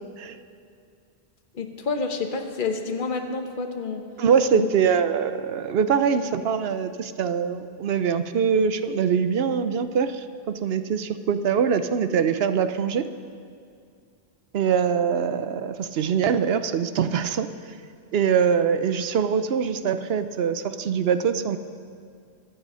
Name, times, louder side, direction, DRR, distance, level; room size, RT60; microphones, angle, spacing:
voice 1, 1.5-4.0 4.5-4.7, left 4 dB, 55° left, 5 dB, 1.2 m, -29 dB
voice 2, 4.2-13.1 14.5-17.5 18.1-21.6, right 7 dB, 70° right, 11 dB, 0.9 m, -23 dB
22.0 x 9.0 x 5.5 m, 2.2 s
omnidirectional pair, 1.1 m